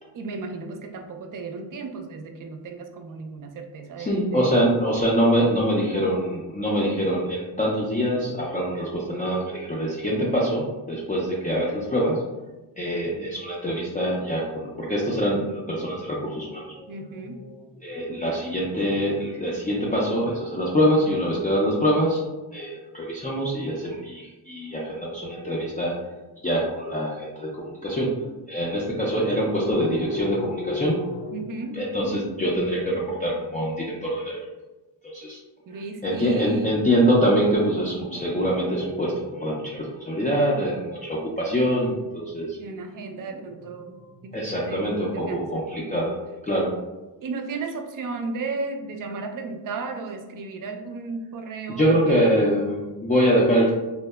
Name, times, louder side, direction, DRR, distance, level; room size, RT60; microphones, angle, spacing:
voice 1, 0.1-4.6 16.9-17.4 31.3-31.8 35.7-36.7 42.5-44.0 44.2-45.7 47.2-52.2, right 4 dB, 45° right, 5 dB, 0.4 m, -34 dB
voice 2, 4.0-12.2 12.8-16.9 17.3-17.4 17.8-22.2 22.5-26.0 26.4-31.4 31.7-34.4 35.0-35.4 36.0-42.6 44.3-46.1 46.4-46.7 51.7-53.7, equal, 20° left, -5 dB, 0.4 m, -24 dB
2.7 x 2.1 x 2.2 m, 1.1 s
cardioid pair, 65°, 47 cm